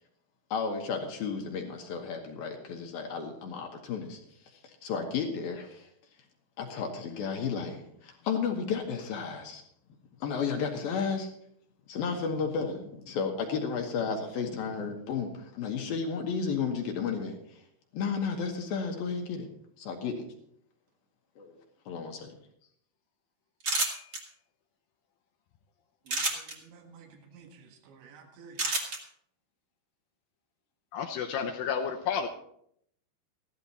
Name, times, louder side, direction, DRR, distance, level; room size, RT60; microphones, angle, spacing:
voice 1, 0.5-4.2 4.5-5.9 6.6-9.6 10.2-11.3 11.9-17.6 17.9-19.5 19.8-20.3 21.4-21.6 21.9-22.3, left 5 dB, 65° left, 2 dB, 2.7 m, -33 dB
sound 1, 23.6-24.2 26.1-26.5 28.6-29.0, right 2 dB, 35° right, 1.7 m, -28 dB
voice 2, 26.1-28.6, right 5 dB, 85° right, 4 dB, 3.9 m, -53 dB
voice 3, 30.9-32.3, left 7 dB, 80° left, 6 dB, 2.0 m, -31 dB
15.0 x 12.0 x 4.2 m, 0.71 s
omnidirectional pair, 5.1 m